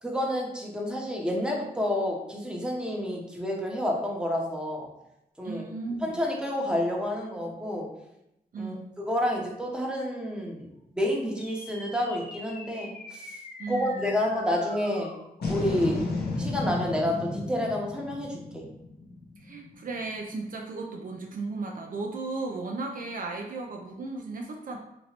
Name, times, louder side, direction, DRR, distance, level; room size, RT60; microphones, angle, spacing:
voice 1, 0.0-4.9 5.4-5.6 6.0-7.9 8.6-13.3 13.7-15.1 15.5-16.0 16.4-18.6, left 1 dB, 5° right, -1 dB, 0.8 m, -29 dB
voice 2, 5.4-6.1 8.5-8.9 13.6-14.2 19.4-24.8, right 3 dB, 60° right, 1 dB, 0.4 m, -35 dB
sound 1, 11.4-20.0, left 2 dB, 80° left, 0.7 m, -35 dB
3.0 x 2.9 x 2.9 m, 0.85 s
cardioid pair, 75°, 16 cm